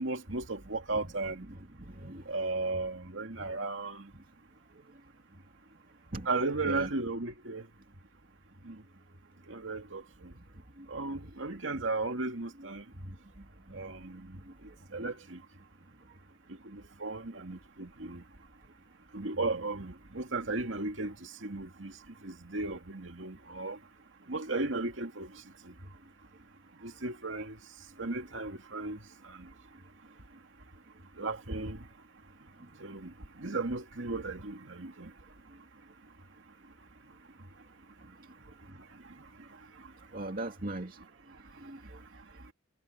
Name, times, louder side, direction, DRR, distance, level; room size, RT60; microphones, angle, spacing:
voice 1, 0.0-1.5 2.3-4.1 6.3-7.7 8.6-8.8 9.5-10.3 10.9-12.8 13.7-14.4 14.9-15.4 16.6-18.2 19.1-21.9 22.2-23.8 24.3-25.3 25.7-25.8 26.8-27.6 28.0-29.5 31.2-31.8 32.8-35.1, right 3 dB, 80° right, 2.4 m, -35 dB
voice 2, 0.9-2.3 3.3-3.5 6.1-6.3 6.6-6.9 10.8-10.9 11.7-11.8 12.6-12.7 13.0-13.2 13.7-13.8 14.5-14.6 38.7-38.8 40.1-41.0 41.6-42.0, right 1 dB, 45° right, 2.4 m, -41 dB
head